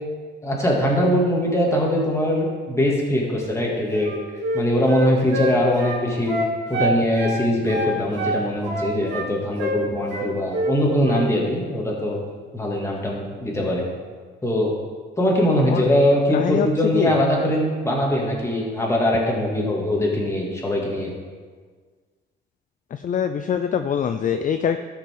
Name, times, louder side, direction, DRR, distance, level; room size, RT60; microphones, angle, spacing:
voice 1, 0.4-4.2 4.5-6.3 6.7-12.2 12.5-13.9 14.4-14.7 15.2-21.1, left 1 dB, 15° left, -3 dB, 2.4 m, -22 dB
Wind instrument woodwind instrument, 3.9-7.4 7.7-9.3 9.6-9.8 10.1-10.7 11.0-11.3, right 1 dB, 60° right, 2.3 m, -26 dB
voice 2, 16.3-17.2 22.9-24.8, left 8 dB, 40° left, 8 dB, 0.4 m, -24 dB
13.0 x 5.8 x 3.8 m, 1.5 s
cardioid pair, 90°, 20 cm